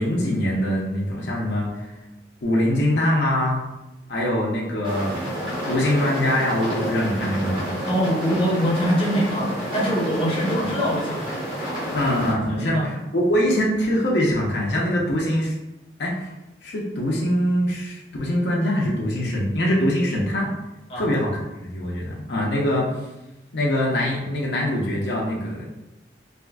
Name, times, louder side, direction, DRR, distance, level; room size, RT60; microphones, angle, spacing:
voice 1, 0.0-1.7 2.4-3.6 4.1-5.1 5.7-7.7 11.9-15.5 16.0-16.1 16.6-20.5 21.0-21.3 21.7-22.8 23.5-25.7, left 1 dB, 70° left, -3 dB, 0.6 m, -23 dB
sound 1, 4.8-12.3, equal, 30° right, 0.7 m, -29 dB
voice 2, 7.9-11.5 12.5-12.9 20.9-21.1, equal, 30° left, -5 dB, 0.7 m, -24 dB
3.5 x 2.4 x 2.2 m, 0.95 s
head